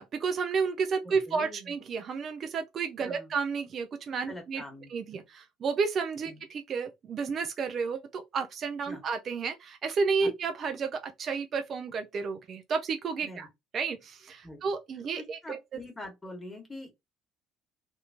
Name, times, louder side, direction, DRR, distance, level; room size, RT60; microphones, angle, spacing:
voice 1, 0.0-4.6 4.9-13.5 13.7-15.8, right 5 dB, 50° right, 0.5 m, -31 dB
voice 2, 1.3-1.7 3.0-3.3 4.3-5.2 6.3-6.4 8.9-9.0 10.2-10.3 13.2-13.5 14.4-14.6 15.2-16.9, left 1 dB, 20° left, 1.4 m, -44 dB
2.8 x 2.6 x 3.4 m
hypercardioid pair, 65°, 0 cm